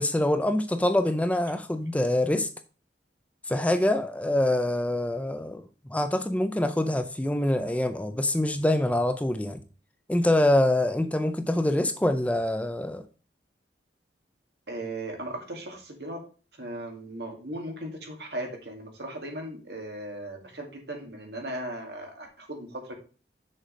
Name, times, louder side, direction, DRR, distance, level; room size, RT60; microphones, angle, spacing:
voice 1, 0.0-2.5 3.5-9.6 10.1-13.0, left 1 dB, 10° left, 0.4 m, -25 dB
voice 2, 14.7-16.2 16.6-22.9, right 1 dB, 65° right, 2.1 m, -37 dB
6.4 x 4.8 x 5.1 m
head